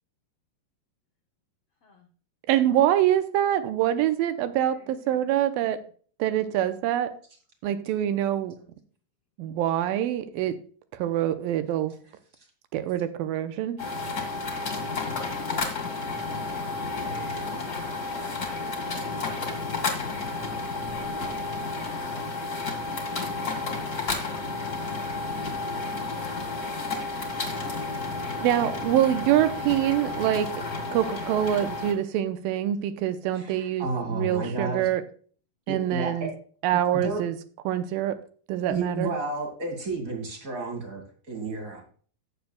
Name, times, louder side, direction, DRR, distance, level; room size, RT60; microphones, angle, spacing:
voice 1, 2.5-5.8 6.2-7.1 7.6-8.6 9.4-10.6 10.9-12.0 12.7-13.8 28.4-30.5 30.9-35.0 35.7-36.3 36.6-37.4 37.7-38.2 38.5-39.1, right 11 dB, 90° right, 10 dB, 2.4 m, -25 dB
voice 2, 4.6-5.2 16.4-17.5 17.9-19.1 28.1-29.3, left 4 dB, 80° left, 4 dB, 1.3 m, -50 dB
sound 1, 13.8-31.9, left 3 dB, 35° left, 1.7 m, -31 dB
voice 3, 33.3-34.8 35.7-36.3 36.9-37.2 38.7-41.8, right 3 dB, 30° right, 2 dB, 1.6 m, -31 dB
16.0 x 7.0 x 2.3 m, 0.43 s
omnidirectional pair, 4.1 m